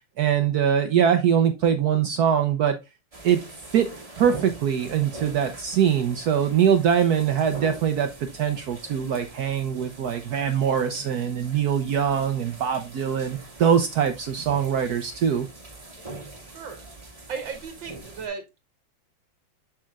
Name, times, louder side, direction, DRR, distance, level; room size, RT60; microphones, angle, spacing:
voice 1, 0.2-2.8 3.2-3.4 3.7-15.5, right 8 dB, 65° right, 1.1 m, -23 dB
sound 1, 3.1-18.3, right 3 dB, 20° right, 1.7 m, -43 dB
voice 2, 16.4-16.8 17.3-18.4, right 6 dB, 80° right, 1.9 m, -35 dB
7.5 x 7.4 x 2.4 m
omnidirectional pair, 2.0 m